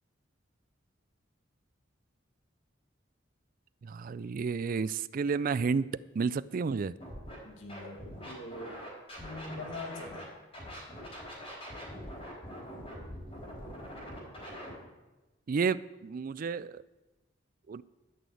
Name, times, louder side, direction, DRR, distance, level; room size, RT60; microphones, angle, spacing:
voice 1, 3.8-7.0 15.5-16.8 17.7-17.8, right 5 dB, 45° right, 18 dB, 0.4 m, -31 dB
Scratching (performance technique), 7.0-7.3 7.7-10.2 10.5-14.7, equal, 30° left, 4.0 m, -43 dB
voice 2, 7.4-8.8 9.2-10.3, left 2 dB, 80° left, 3 dB, 1.9 m, -43 dB
12.0 x 6.3 x 7.8 m, 1.1 s
head